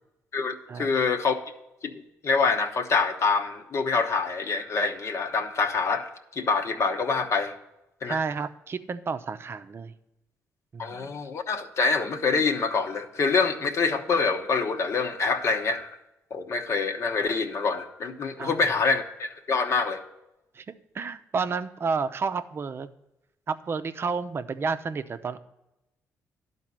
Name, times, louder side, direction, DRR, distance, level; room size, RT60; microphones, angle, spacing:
voice 1, 0.3-1.4 1.8-7.5 8.0-8.2 10.8-15.9 16.3-20.0, left 4 dB, 50° left, 6 dB, 1.0 m, -26 dB
voice 2, 8.1-9.9 10.7-11.1 18.4-18.6 20.5-20.6 20.9-22.9 23.5-25.4, right 5 dB, 40° right, 10 dB, 0.6 m, -31 dB
11.0 x 4.1 x 7.5 m, 0.92 s
cardioid pair, 85°, 6 cm